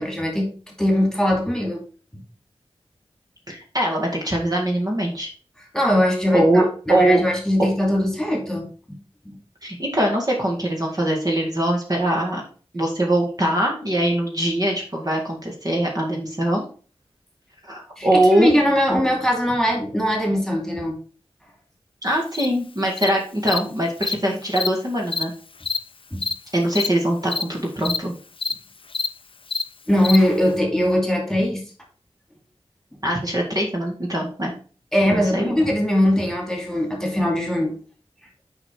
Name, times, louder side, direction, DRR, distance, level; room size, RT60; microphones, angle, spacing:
voice 1, 0.0-1.8 2.1-2.2 5.7-9.0 9.3-9.4 18.0-21.0 26.1-26.2 29.9-31.6 34.9-37.8, left 1 dB, 5° left, 0 dB, 2.5 m, -21 dB
voice 2, 3.5-5.3 6.3-7.2 9.6-12.4 12.7-16.6 17.6-18.5 22.0-25.3 26.5-28.1 33.0-34.5 35.1-35.6, right 1 dB, 40° right, -1 dB, 2.1 m, -22 dB
Cricket, 22.3-22.5 23.0-23.1 23.5-23.6 24.0-24.1 24.5-24.7 25.1-25.2 25.6-25.8 26.2-26.3 26.7-26.9 27.3-27.4 27.8-28.0 28.4-28.5 28.9-29.1 29.5-29.6 30.0-30.2, left 4 dB, 60° left, 0.5 m, -25 dB
5.9 x 5.1 x 4.6 m, 0.40 s
cardioid pair, 45°, 10 cm